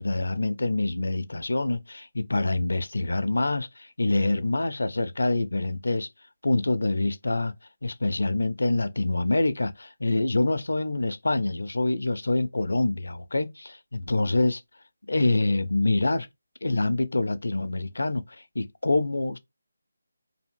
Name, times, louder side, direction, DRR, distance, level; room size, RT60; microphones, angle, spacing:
voice 1, 0.0-6.1 6.4-7.5 7.8-14.6 15.1-16.3 16.6-19.4, left 2 dB, 70° left, 0.4 m, -26 dB
2.7 x 2.4 x 3.3 m
figure-of-eight pair, 155°, 0 cm